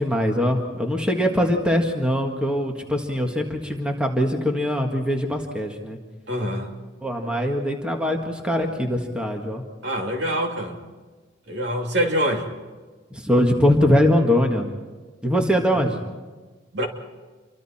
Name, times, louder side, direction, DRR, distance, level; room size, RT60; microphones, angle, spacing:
voice 1, 0.0-6.0 7.0-9.6 13.1-14.7 15.2-15.9, equal, 5° right, 2 dB, 1.8 m, -22 dB
voice 2, 6.3-6.7 9.8-10.8 11.5-12.5 15.5-15.8 16.7-16.9, equal, 65° right, 2 dB, 2.8 m, -25 dB
28.5 x 24.0 x 4.4 m, 1.3 s
head